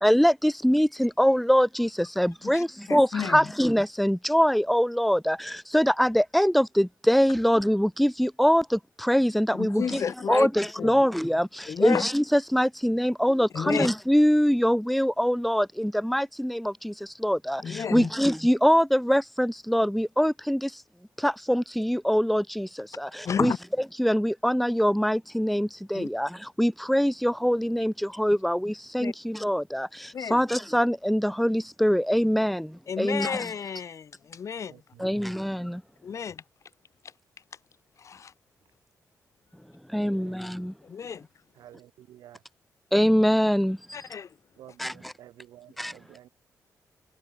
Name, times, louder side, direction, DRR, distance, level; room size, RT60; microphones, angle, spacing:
voice 1, 0.0-10.0 10.3-20.8 21.2-23.5 24.0-33.5 35.0-35.8 39.9-40.7 42.9-43.8 44.8-45.1 45.8-45.9, equal, ahead, 1.2 m, -24 dB
voice 2, 2.4-3.5 9.6-10.5 10.8-10.9 11.7-12.0 13.5-13.9 17.6-18.1 23.2-23.6 25.9-26.1 29.0-29.1 30.1-30.4 32.9-34.8 36.0-36.4 38.0-38.3 40.8-41.3 43.9-44.3, left 7 dB, 50° left, 0.6 m, -31 dB
voice 3, 34.7-35.3 40.1-40.4 41.6-42.4 44.6-46.3, right 12 dB, 85° right, 1.0 m, -51 dB
cardioid pair, 80°, 7 cm